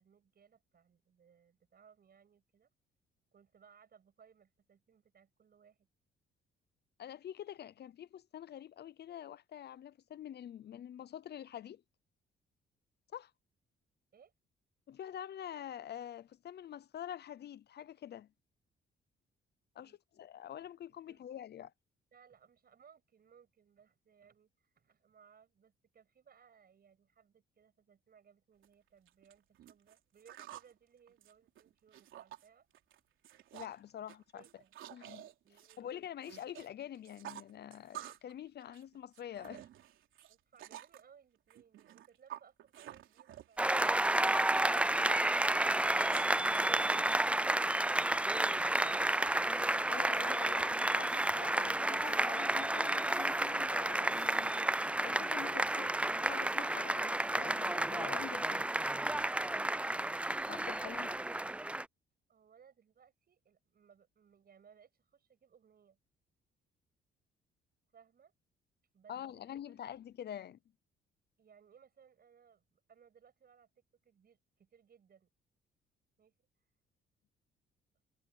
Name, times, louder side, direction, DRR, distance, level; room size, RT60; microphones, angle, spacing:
voice 1, 0.0-2.7 3.3-5.9 14.1-14.3 19.8-20.0 20.3-20.4 20.9-21.2 22.1-32.7 34.3-34.8 35.4-35.9 40.3-45.1 62.3-66.0 67.9-68.3 68.9-69.2 69.6-69.8 71.4-73.7 74.0-75.3 76.2-76.3, right 7 dB, 50° right, 7.7 m, -64 dB
voice 2, 7.0-11.8 13.1-13.3 14.9-18.3 19.7-21.7 33.5-34.4 34.9-35.3 35.8-39.6 49.9-54.6 55.0-55.9 56.2-58.7 60.5-61.1 69.1-70.6, left 10 dB, 55° left, 0.7 m, -46 dB
sound 1, 28.6-28.7 29.1-30.7 31.1-32.5 32.7-33.0 33.2-33.8 34.1-36.7 36.9-38.3 38.6-41.0 41.5-46.5, right 12 dB, 80° right, 3.4 m, -50 dB
Applause, 43.6-61.9, right 1 dB, 5° right, 0.4 m, -31 dB
sound 2, 50.1-50.4 51.1-51.4 52.0-52.4 53.1-53.5 54.1-54.5, left 2 dB, 20° left, 3.6 m, -59 dB
cardioid pair, 90°, 20 cm